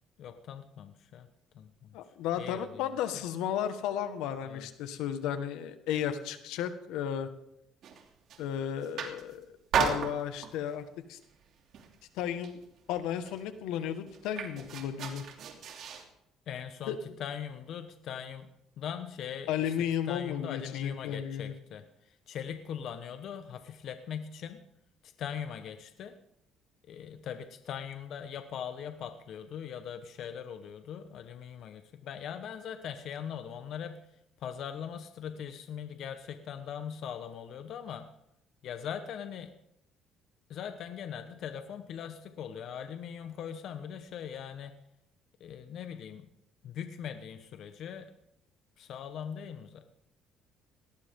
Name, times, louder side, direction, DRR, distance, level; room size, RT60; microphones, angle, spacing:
voice 1, 0.2-1.3 1.5-2.0 2.3-2.8 3.1-3.2 4.5-4.7 16.5-18.5 18.8-19.7 20.1-24.6 25.0-26.2 26.9-34.0 34.4-38.1 38.6-39.5 40.5-44.7 45.4-46.2 46.6-48.1 48.8-49.8, left 8 dB, 60° left, 8 dB, 1.2 m, -41 dB
voice 2, 1.9-7.3 8.4-9.4 9.8-11.2 12.1-12.6 12.9-15.2 16.9-17.0 19.5-21.5, left 9 dB, 85° left, 9 dB, 1.6 m, -34 dB
sound 1, 7.8-8.5 8.8-9.3 9.7-10.7 11.2-11.5 11.7-12.6 13.0-13.1 13.2-16.1, right 7 dB, 60° right, 2.8 m, -34 dB
19.0 x 18.0 x 3.8 m, 0.81 s
cardioid pair, 115°, 0 cm